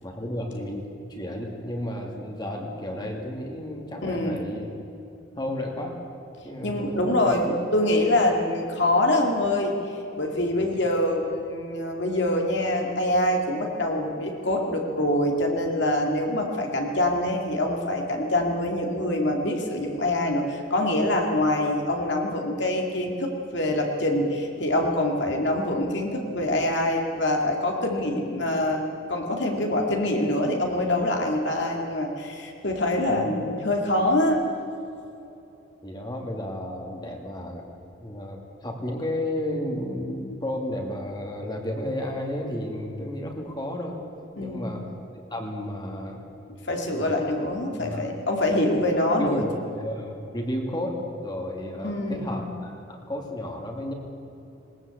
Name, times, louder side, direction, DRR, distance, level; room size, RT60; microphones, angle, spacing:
voice 1, 0.0-4.7 5.4-6.0 6.4-7.3 10.6-10.8 33.1-33.3 35.8-37.6 38.0-44.0 44.4-44.8 45.2-46.2 47.0-47.2 47.8-48.1 49.2-53.9, left 1 dB, 20° left, 1 dB, 2.5 m, -32 dB
voice 2, 4.0-4.4 6.6-9.8 10.2-28.8 29.1-34.4 44.4-44.7 46.6-49.4 51.8-52.4, left 1 dB, 60° left, 1 dB, 2.5 m, -25 dB
20.0 x 19.5 x 8.4 m, 2.9 s
head